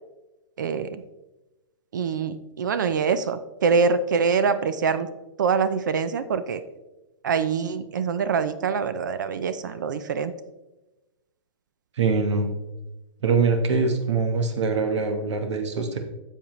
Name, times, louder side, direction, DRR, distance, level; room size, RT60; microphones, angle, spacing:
voice 1, 0.6-1.0 1.9-5.1 5.4-6.6 7.2-10.3, right 5 dB, 40° right, 13 dB, 0.4 m, -24 dB
voice 2, 12.0-12.5 13.2-16.0, right 4 dB, 65° right, 6 dB, 1.1 m, -23 dB
10.0 x 7.3 x 3.0 m, 1.0 s
hypercardioid pair, 180°, 16 cm